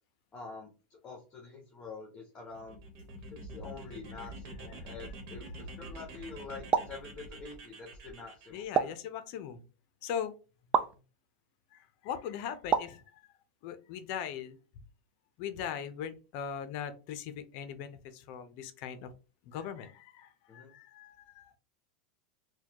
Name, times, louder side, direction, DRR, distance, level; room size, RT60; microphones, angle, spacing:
voice 1, 0.3-2.8 3.3-8.9 20.5-20.7, left 4 dB, 20° left, 0 dB, 1.0 m, -47 dB
sound 1, 2.5-8.6, right 1 dB, 55° right, 1.2 m, -46 dB
sound 2, 6.7-7.0 8.8-9.1 10.7-11.0 12.7-13.0, right 7 dB, 25° right, 0.3 m, -28 dB
voice 2, 8.5-9.6 10.0-10.3 11.7-13.2 13.6-14.6 15.4-19.1 19.4-21.5, left 8 dB, 55° left, 11 dB, 0.6 m, -40 dB
4.1 x 2.3 x 2.9 m, 0.33 s
supercardioid pair, 135°, 5 cm